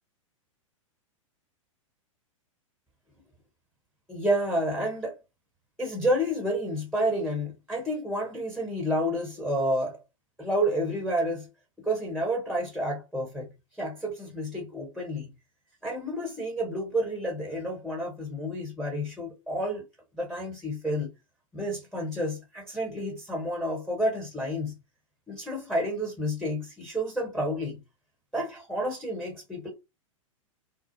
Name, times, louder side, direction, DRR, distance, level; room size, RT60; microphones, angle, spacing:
voice 1, 4.1-5.2 5.8-10.0 10.4-11.5 11.8-13.5 13.8-15.3 15.8-19.9 20.1-21.1 21.5-24.7 25.3-27.8 28.3-29.7, equal, ahead, 0.9 m, -30 dB
2.4 x 2.0 x 2.8 m
hypercardioid pair, 105°, 17 cm